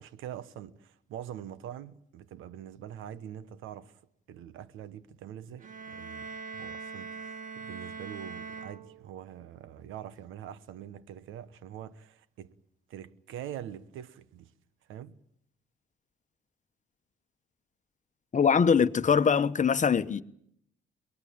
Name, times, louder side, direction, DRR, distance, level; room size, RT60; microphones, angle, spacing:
voice 1, 0.0-4.0 4.3-12.5 12.9-14.5 14.9-15.2, right 10 dB, 90° right, 1.2 m, -44 dB
sound 1, 5.6-9.4, right 5 dB, 40° right, 2.1 m, -42 dB
voice 2, 18.3-20.2, left 6 dB, 40° left, 1.2 m, -23 dB
23.5 x 21.0 x 8.7 m
cardioid pair, 90°, 20 cm